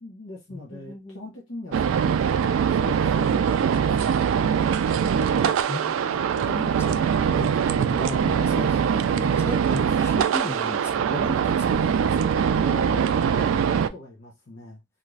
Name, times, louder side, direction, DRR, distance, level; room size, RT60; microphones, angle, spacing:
voice 1, 0.0-2.2 2.7-4.2 6.0-6.2 12.3-14.8, left 2 dB, 65° left, 0.8 m, -40 dB
voice 2, 0.5-1.2 5.4-12.4, left 2 dB, 10° left, 0.3 m, -36 dB
sound 1, 1.7-13.9, right 7 dB, 80° right, 0.3 m, -22 dB
2.5 x 2.4 x 3.2 m
head